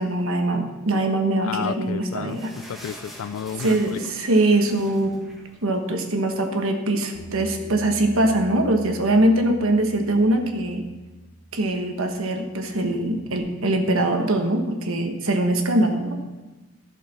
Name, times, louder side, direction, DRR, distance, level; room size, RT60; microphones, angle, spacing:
voice 1, 0.0-2.5 3.6-5.2 5.6-10.9 11.5-16.2, right 1 dB, 70° right, 4 dB, 1.3 m, -22 dB
voice 2, 1.4-2.4 2.7-4.0, left 8 dB, 70° left, 15 dB, 0.3 m, -31 dB
sound 1, 1.7-6.3 6.7-6.8 7.0-7.2 7.9-8.0, equal, ahead, 1.2 m, -44 dB
Bass guitar, 7.1-13.4, equal, 20° left, 4.1 m, -44 dB
12.0 x 6.7 x 5.9 m, 1.2 s
head